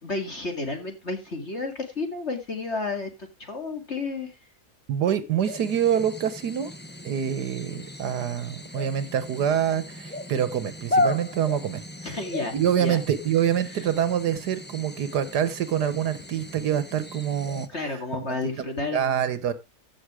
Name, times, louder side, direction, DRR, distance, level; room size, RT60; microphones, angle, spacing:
voice 1, 0.0-3.1 3.4-4.3 12.0-13.0 13.7-13.9 17.7-19.2, left 3 dB, 45° left, 6 dB, 2.5 m, -31 dB
voice 2, 4.9-6.7 7.0-11.8 12.5-17.7 18.2-19.5, right 9 dB, 85° right, 14 dB, 1.6 m, -26 dB
sound 1, 5.4-17.7, left 2 dB, 10° left, 0.7 m, -34 dB
16.0 x 6.4 x 4.8 m, 0.27 s
omnidirectional pair, 1.7 m